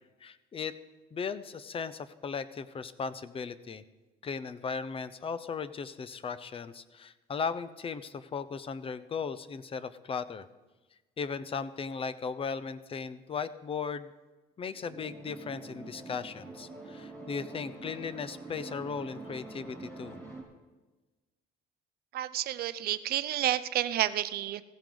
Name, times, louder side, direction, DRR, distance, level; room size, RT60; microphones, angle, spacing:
voice 1, 0.2-0.7 1.1-3.8 4.2-10.5 11.2-14.1 14.6-20.2, left 5 dB, 35° left, 14 dB, 0.8 m, -37 dB
sound 1, 14.7-20.4, right 3 dB, 15° left, 5.1 m, -45 dB
voice 2, 22.1-24.6, right 12 dB, 65° right, 13 dB, 0.6 m, -30 dB
16.0 x 15.5 x 4.0 m, 1.2 s
cardioid pair, 110°, 17 cm